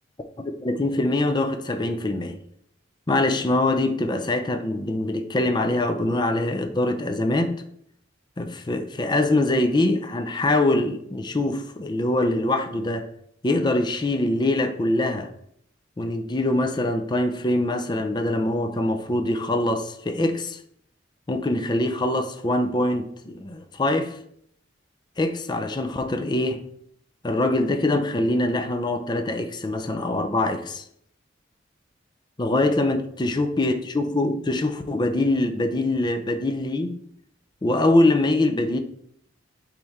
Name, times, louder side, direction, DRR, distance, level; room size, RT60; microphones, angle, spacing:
voice 1, 0.4-2.4 3.1-7.6 8.4-13.1 13.4-15.3 16.0-20.6 21.3-24.1 25.2-26.6 27.2-30.8 32.4-37.0 37.6-38.8, left 2 dB, 25° left, 0.5 m, -23 dB
9.0 x 3.2 x 3.6 m
head